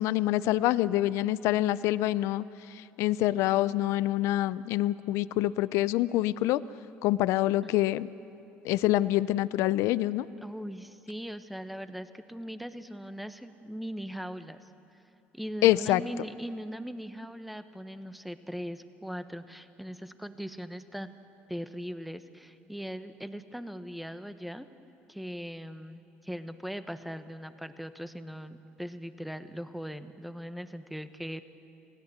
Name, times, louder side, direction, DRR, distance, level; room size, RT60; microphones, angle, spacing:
voice 1, 0.0-6.6 7.0-8.1 8.6-10.3 15.6-16.0, left 15 dB, 75° left, 17 dB, 0.5 m, -26 dB
voice 2, 10.4-14.7 15.3-21.2 21.5-24.7 25.1-31.4, equal, ahead, 10 dB, 1.2 m, -40 dB
27.5 x 17.0 x 8.0 m, 2.8 s
supercardioid pair, 80°, 5 cm